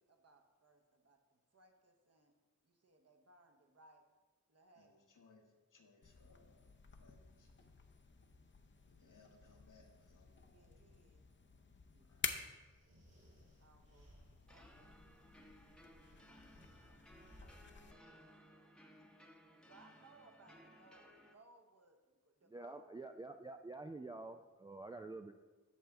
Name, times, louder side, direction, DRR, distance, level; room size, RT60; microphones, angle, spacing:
voice 1, 0.0-2.3 2.6-4.0 4.5-5.0 10.5-11.3 11.9-12.5 13.6-15.0 16.0-17.0 19.6-23.0, right 3 dB, 50° right, 4 dB, 1.0 m, -67 dB
voice 2, 4.7-7.7 8.9-11.2 12.0-12.4, left 3 dB, 70° left, 1 dB, 1.4 m, -68 dB
sound 1, 6.0-17.9, left 5 dB, 35° left, 0.7 m, -51 dB
sound 2, 12.5-14.6 15.9-17.8, equal, 75° right, 2.3 m, -65 dB
sound 3, 14.5-21.3, equal, 5° left, 0.9 m, -62 dB
voice 3, 22.5-25.3, right 2 dB, 15° right, 5 dB, 0.3 m, -48 dB
8.4 x 6.4 x 3.6 m, 1.3 s
cardioid pair, 65°, 32 cm